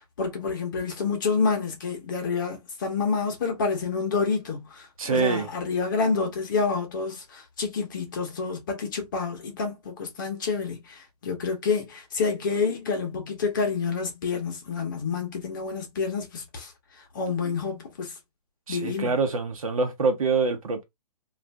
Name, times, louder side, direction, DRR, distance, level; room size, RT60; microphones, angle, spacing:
voice 1, 0.2-16.7 17.1-18.1 18.7-19.1, left 5 dB, 30° left, 0.8 m, -28 dB
voice 2, 5.0-5.5 18.7-20.8, right 4 dB, 60° right, 1.0 m, -25 dB
2.5 x 2.5 x 3.4 m
hypercardioid pair, 170°, 20 cm